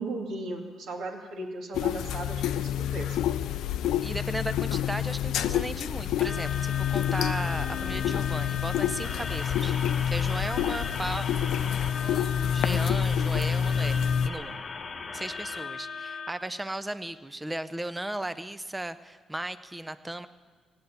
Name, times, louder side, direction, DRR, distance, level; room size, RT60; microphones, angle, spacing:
voice 1, 0.0-3.3, right 2 dB, 65° right, 2 dB, 2.1 m, -36 dB
sound 1, 1.7-14.3, left 9 dB, 80° left, 0.5 m, -28 dB
voice 2, 4.0-11.3 12.0-14.6 15.1-20.3, right 1 dB, 10° right, 13 dB, 0.5 m, -36 dB
sound 2, 6.2-16.3, left 4 dB, 35° left, 1.2 m, -38 dB
18.0 x 7.9 x 9.7 m, 1.5 s
cardioid pair, 145°, 0 cm